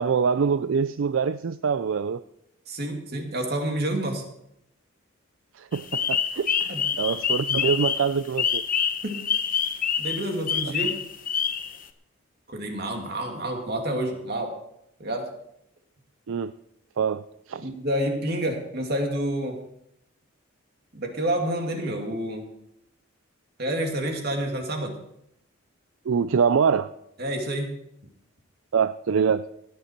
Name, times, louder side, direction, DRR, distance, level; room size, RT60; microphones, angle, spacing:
voice 1, 0.0-2.2 5.6-8.6 16.3-16.5 17.0-17.2 17.5-17.7 26.1-26.9 28.7-29.4, right 6 dB, 75° right, 13 dB, 0.4 m, -24 dB
voice 2, 2.7-4.2 6.7-6.8 9.0-9.2 10.0-11.0 12.5-14.5 15.0-15.3 17.6-19.6 20.9-22.5 23.6-25.0 27.2-27.7, right 1 dB, 50° right, 2 dB, 2.5 m, -28 dB
sound 1, 5.7-11.8, left 7 dB, 40° left, 0.9 m, -26 dB
17.0 x 10.0 x 4.5 m, 0.78 s
head